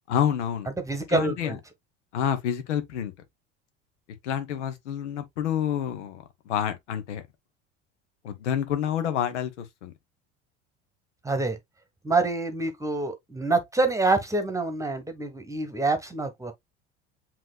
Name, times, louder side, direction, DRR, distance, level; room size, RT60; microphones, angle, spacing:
voice 1, 0.1-0.7 1.1-1.6 2.1-3.1 4.2-7.2 8.2-9.9, left 9 dB, 80° left, 1.1 m, -28 dB
voice 2, 0.8-1.6 11.2-11.6 12.0-16.5, right 3 dB, 10° right, 1.2 m, -26 dB
7.7 x 3.0 x 2.3 m
hypercardioid pair, 75°, 35 cm